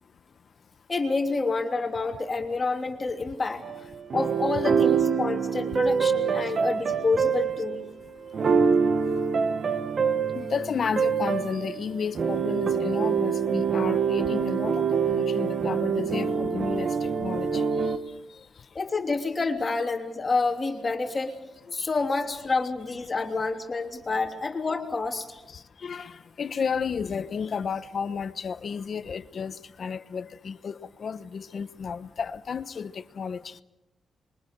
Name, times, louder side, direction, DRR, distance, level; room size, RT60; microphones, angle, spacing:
voice 1, 0.9-3.6 4.1-7.8 18.7-21.4 21.7-25.4, left 3 dB, 30° left, 3.1 m, -28 dB
sound 1, 3.6-18.0, right 6 dB, 50° right, 1.4 m, -25 dB
voice 2, 10.3-17.6 25.5-33.6, left 6 dB, 50° left, 1.0 m, -32 dB
26.5 x 23.5 x 6.7 m
cardioid pair, 110°, 0 cm